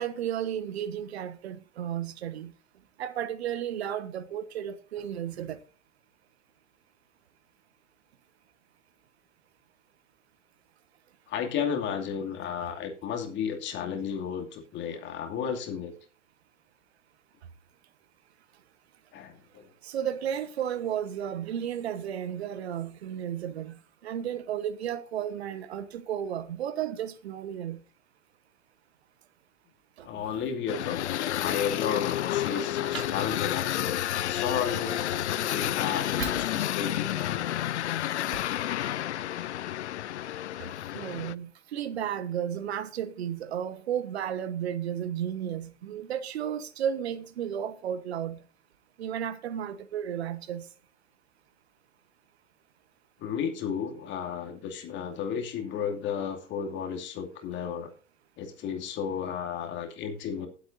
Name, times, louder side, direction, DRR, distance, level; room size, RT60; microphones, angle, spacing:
voice 1, 0.0-2.5 3.0-5.6 19.8-27.8 30.0-30.4 32.9-33.1 36.2-36.3 40.9-48.4 49.0-50.7, right 9 dB, 60° right, 1.1 m, -33 dB
voice 2, 11.3-15.9 19.1-19.7 30.0-37.6 53.2-57.9 58.4-60.5, left 7 dB, 30° left, 2.5 m, -33 dB
sound 1, 30.7-41.3, left 12 dB, 65° left, 0.6 m, -30 dB
18.5 x 8.3 x 2.7 m
figure-of-eight pair, 100°, 36 cm